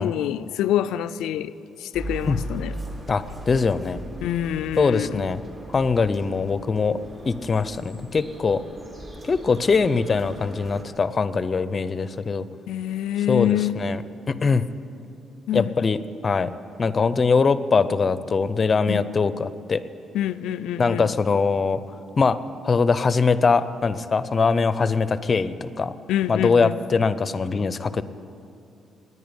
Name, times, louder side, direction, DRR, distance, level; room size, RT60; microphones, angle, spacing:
voice 1, 0.0-1.5 1.8-2.8 4.2-5.2 12.7-13.8 15.5-15.7 18.9-19.1 20.1-21.1 26.1-26.8, left 11 dB, 90° left, 0.3 m, -26 dB
sound 1, 1.9-10.8, right 1 dB, 35° right, 2.2 m, -38 dB
voice 2, 3.1-4.0 4.8-5.4 5.7-7.0 7.3-8.6 9.2-12.5 13.3-14.0 14.3-14.6 15.5-16.0 16.2-16.5 16.8-19.8 20.8-21.8 22.2-22.4 22.6-25.9 26.3-28.0, left 4 dB, 35° left, 0.5 m, -22 dB
10.0 x 9.7 x 9.8 m
cardioid pair, 90°, 0 cm